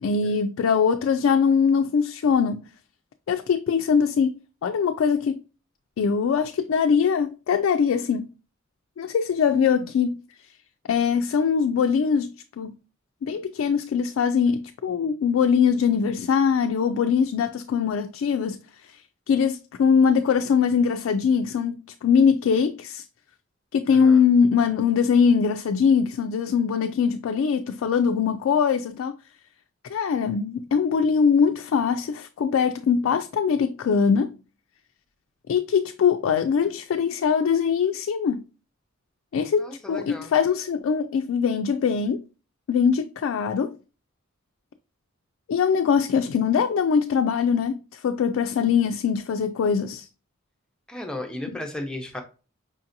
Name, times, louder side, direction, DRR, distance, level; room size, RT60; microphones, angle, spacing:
voice 1, 0.0-2.6 3.3-5.4 6.0-8.3 9.0-10.2 10.9-12.8 13.2-18.6 18.9-19.0 19.3-23.0 23.7-29.1 29.9-34.4 35.5-38.4 39.3-42.2 42.7-43.8 45.5-50.1, left 6 dB, 75° left, 0.3 m, -22 dB
voice 2, 23.9-24.2 39.6-40.3 50.9-52.2, left 1 dB, 5° left, 0.7 m, -35 dB
5.1 x 2.7 x 2.5 m
head